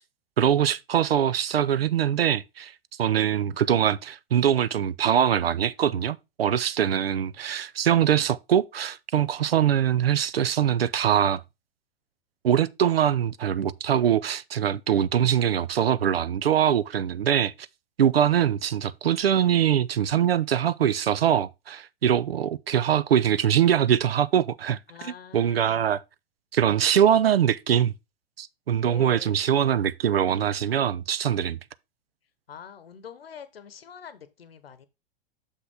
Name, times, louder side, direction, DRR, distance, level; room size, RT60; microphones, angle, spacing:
voice 1, 0.4-2.7 3.0-11.4 12.4-17.5 18.0-26.0 26.5-27.9 28.4-31.6, right 9 dB, 80° right, 0.5 m, -23 dB
voice 2, 24.9-25.9 28.9-29.4 32.5-34.9, left 7 dB, 75° left, 1.0 m, -45 dB
6.6 x 5.5 x 3.5 m
figure-of-eight pair, 95°, 30 cm